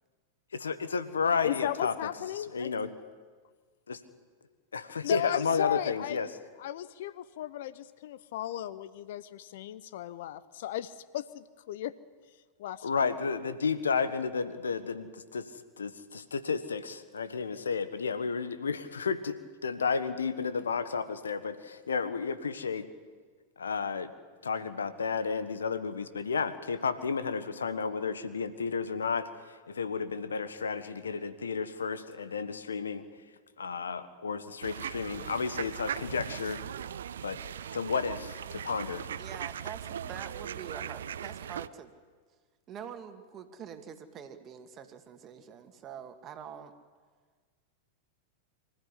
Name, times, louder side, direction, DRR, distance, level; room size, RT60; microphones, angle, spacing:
voice 1, 0.5-1.9 2.4-2.9 3.9-4.0 4.7-6.3 12.8-15.4 15.8-22.9 23.6-24.1 24.4-33.1 33.6-36.6 37.2-37.4 37.7-39.1, left 5 dB, 80° left, 12 dB, 1.4 m, -32 dB
voice 2, 1.4-2.7 5.0-6.2 6.6-11.9 12.6-12.9, left 12 dB, 60° left, 17 dB, 0.7 m, -36 dB
sound 1, 34.6-41.7, right 9 dB, 70° right, 0.6 m, -39 dB
voice 3, 39.2-41.9 42.7-46.7, right 8 dB, 35° right, 7 dB, 2.2 m, -45 dB
25.0 x 14.5 x 10.0 m, 1.5 s
figure-of-eight pair, 95°, 0 cm